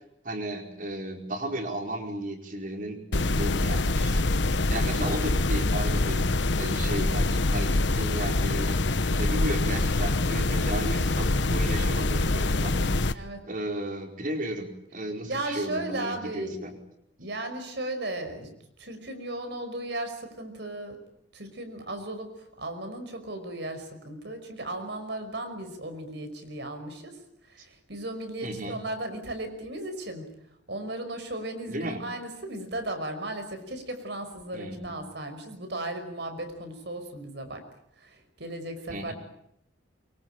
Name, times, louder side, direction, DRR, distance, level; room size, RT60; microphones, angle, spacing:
voice 1, 0.2-6.3 6.6-16.7 28.4-28.8 31.7-32.0 34.5-35.0 38.9-39.1, right 1 dB, 45° right, 4 dB, 4.7 m, -35 dB
sound 1, 3.1-13.1, left 2 dB, 70° left, 1.1 m, -25 dB
voice 2, 15.3-16.6 17.2-18.5 18.8-21.0 21.3-22.3 22.6-27.2 27.5-30.3 30.7-37.6 38.0-39.1, right 1 dB, 65° right, 7 dB, 5.5 m, -36 dB
24.5 x 24.0 x 9.0 m, 0.76 s
head